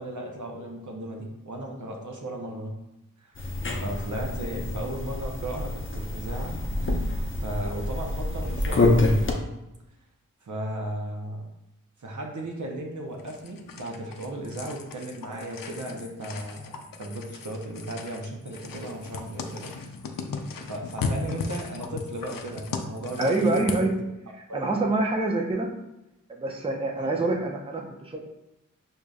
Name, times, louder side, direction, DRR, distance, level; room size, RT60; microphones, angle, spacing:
voice 1, 0.0-2.7 3.2-7.1 7.4-9.2 10.4-11.5 12.0-19.7 20.7-24.1 24.5-24.8 26.9-27.3, right 1 dB, 60° right, 1 dB, 0.7 m, -36 dB
sound 1, 3.3-9.3, left 2 dB, 35° left, 0.6 m, -27 dB
sound 2, 13.2-23.9, left 4 dB, 75° left, 0.5 m, -37 dB
voice 2, 23.2-23.9 24.5-25.7 26.3-28.3, right 2 dB, 15° right, 1 dB, 0.5 m, -26 dB
4.9 x 2.7 x 2.3 m, 0.90 s
cardioid pair, 45°, 34 cm